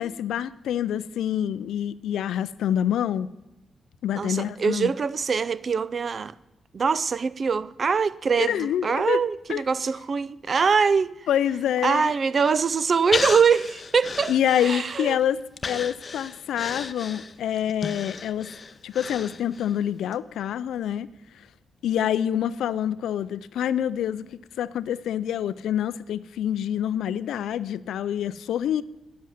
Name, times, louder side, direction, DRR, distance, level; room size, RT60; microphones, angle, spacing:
voice 1, 0.0-3.3 4.0-4.9 8.4-9.2 9.5-9.6 11.3-12.1 14.3-15.4 15.7-18.5 18.8-21.1 21.8-28.8, left 10 dB, 90° left, 0.4 m, -26 dB
voice 2, 4.2-6.4 6.7-11.1 11.8-14.3 14.6-15.2, right 5 dB, 45° right, 0.4 m, -23 dB
Breathing, 13.1-15.1 15.6-19.8 20.1-20.2, left 4 dB, 40° left, 0.6 m, -33 dB
9.4 x 7.6 x 7.2 m
cardioid pair, 95°, 0 cm